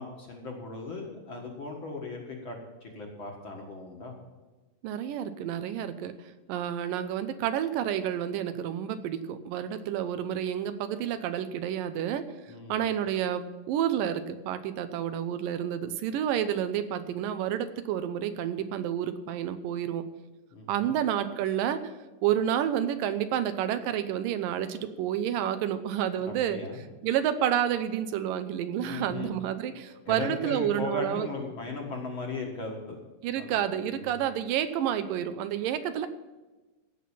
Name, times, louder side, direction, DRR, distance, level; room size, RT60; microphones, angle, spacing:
voice 1, 0.0-4.1 12.5-12.8 20.5-20.9 26.2-26.8 28.8-29.3 30.1-33.0 33.4-33.5 33.9-34.2, left 3 dB, 45° left, 0 dB, 2.1 m, -37 dB
voice 2, 4.8-12.3 12.7-20.1 20.7-21.9 22.2-26.6 27.0-31.3 33.2-36.1, right 10 dB, 85° right, 11 dB, 2.5 m, -30 dB
16.0 x 5.9 x 7.3 m, 1.2 s
omnidirectional pair, 3.8 m